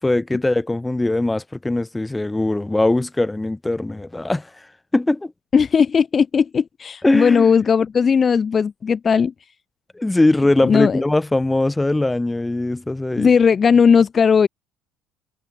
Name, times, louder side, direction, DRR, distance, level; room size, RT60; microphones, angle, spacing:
voice 1, 0.0-4.7 4.9-5.3 7.0-7.5 9.9-13.3, left 2 dB, 10° left, 5.1 m, -20 dB
voice 2, 5.5-9.3 10.6-11.0 13.2-14.5, left 6 dB, 35° left, 2.5 m, -17 dB
supercardioid pair, 85°, 0 cm